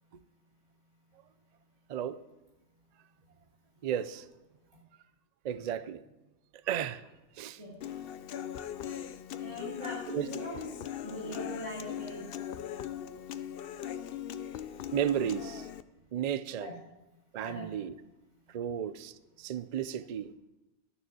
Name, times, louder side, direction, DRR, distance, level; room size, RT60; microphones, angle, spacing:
voice 1, 3.8-4.3 5.4-6.0 6.6-7.1 7.3-7.6 10.1-10.4 14.9-15.7 16.1-16.7 17.3-18.0 18.5-20.3, right 9 dB, 60° right, 14 dB, 0.4 m, -34 dB
Human voice / Acoustic guitar, 7.8-15.8, left 10 dB, 60° left, 0.7 m, -40 dB
voice 2, 9.4-10.7 11.0-12.2 15.2-15.3 16.5-16.7 17.4-17.7, equal, 90° right, -3 dB, 4.5 m, -42 dB
12.0 x 7.0 x 6.2 m, 1.0 s
omnidirectional pair, 1.2 m